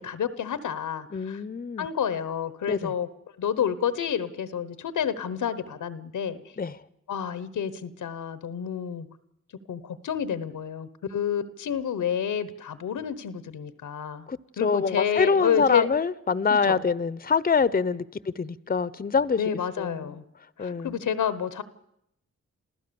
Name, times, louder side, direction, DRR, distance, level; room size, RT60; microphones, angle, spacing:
voice 1, 0.0-1.4 1.8-3.1 3.4-6.4 7.1-9.1 9.7-14.3 14.6-15.9 16.5-16.8 19.4-20.2 20.6-21.6, left 8 dB, 90° left, 1.0 m, -29 dB
voice 2, 1.1-1.9 2.7-2.9 6.6-6.8 14.3-18.0 18.4-19.4 19.8-20.1 20.6-21.0, left 5 dB, 30° left, 0.7 m, -25 dB
28.0 x 15.0 x 7.0 m
cardioid pair, 45°, 30 cm